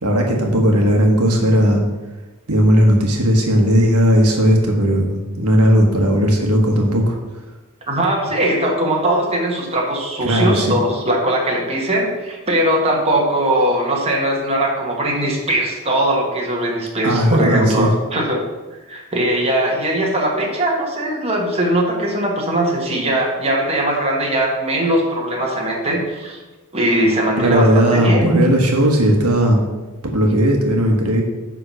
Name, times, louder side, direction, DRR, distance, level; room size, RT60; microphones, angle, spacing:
voice 1, 0.0-1.8 2.5-7.2 10.2-10.8 17.0-17.9 27.4-29.6 30.1-31.2, equal, 80° right, 1 dB, 1.4 m, -16 dB
voice 2, 7.9-18.5 18.9-26.4 26.7-28.2, right 1 dB, 30° right, -1 dB, 1.5 m, -20 dB
9.7 x 3.8 x 6.2 m, 1.2 s
head